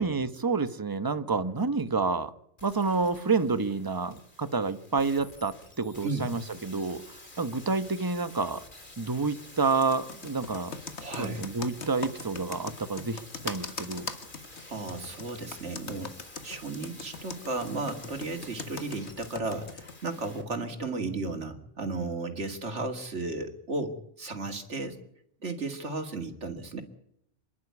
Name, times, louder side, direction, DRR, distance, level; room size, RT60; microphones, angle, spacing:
voice 1, 0.0-2.3 2.6-7.0 7.4-8.6 9.0-10.8 11.2-14.1, right 4 dB, 20° right, 1.0 m, -29 dB
sound 1, 2.6-20.4 20.7-20.8, left 2 dB, 45° left, 3.4 m, -50 dB
Computer keyboard, 9.7-19.9, left 4 dB, 70° left, 1.9 m, -39 dB
voice 2, 11.0-11.4 14.7-16.2 16.4-25.0 25.4-26.8, right 3 dB, 75° right, 2.6 m, -34 dB
27.0 x 11.5 x 9.5 m
omnidirectional pair, 1.2 m